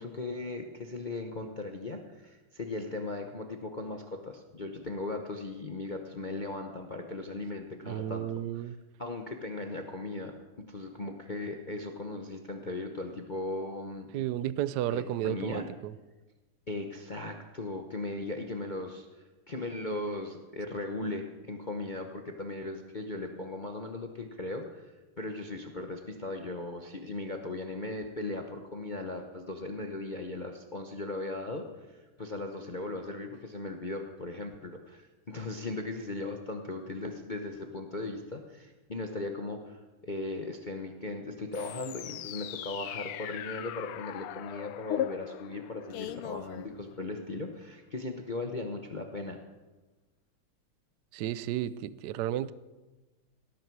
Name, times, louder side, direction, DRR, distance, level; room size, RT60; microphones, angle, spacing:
voice 1, 0.0-8.3 8.5-8.7 9.0-14.1 14.9-15.7 16.7-19.1 19.5-31.7 31.9-49.4, left 2 dB, 45° left, 4 dB, 0.6 m, -38 dB
voice 2, 7.8-8.8 14.1-15.9 51.1-52.5, right 12 dB, 80° right, 17 dB, 0.9 m, -33 dB
sound 1, 41.5-47.2, left 12 dB, 80° left, 1.5 m, -38 dB
18.5 x 13.5 x 4.7 m, 1.2 s
omnidirectional pair, 2.4 m